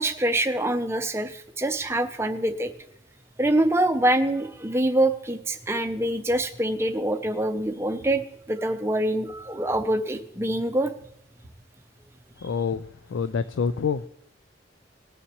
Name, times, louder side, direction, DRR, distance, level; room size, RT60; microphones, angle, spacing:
voice 1, 0.0-2.7 3.4-10.9, right 1 dB, 15° right, 0.6 m, -25 dB
sound 1, 5.8-5.9 6.3-6.4 7.6-7.7 8.0-8.1 9.3-9.4 9.7-9.8 11.0-11.1 11.4-11.5 12.7-12.8, right 1 dB, 60° left, 3.3 m, -51 dB
voice 2, 12.4-14.1, left 6 dB, 80° left, 0.4 m, -27 dB
19.5 x 7.1 x 3.0 m
head